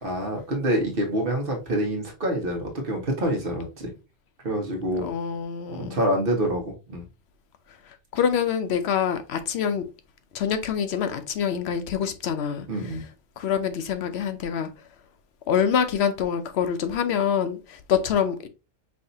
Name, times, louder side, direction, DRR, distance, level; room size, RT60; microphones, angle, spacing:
voice 1, 0.0-3.9 4.4-5.1 5.7-7.1 12.7-13.0, right 1 dB, 55° right, 1.3 m, -26 dB
voice 2, 5.0-6.0 8.1-9.9 10.3-12.7 13.4-14.7 15.5-18.5, left 8 dB, 70° left, 0.8 m, -25 dB
5.5 x 2.8 x 2.7 m
omnidirectional pair, 1.2 m